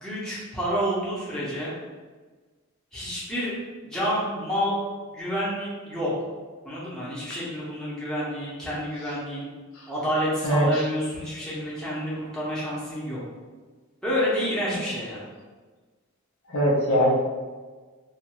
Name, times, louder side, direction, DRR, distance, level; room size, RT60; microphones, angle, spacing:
voice 1, 0.0-1.7 2.9-3.5 3.8-4.8 5.1-6.1 6.6-9.5 9.9-13.2 14.0-15.2, equal, 5° left, -9 dB, 0.7 m, -29 dB
voice 2, 10.4-10.9 16.5-17.1, equal, 85° left, -3 dB, 0.7 m, -21 dB
2.5 x 2.3 x 3.0 m, 1.4 s
head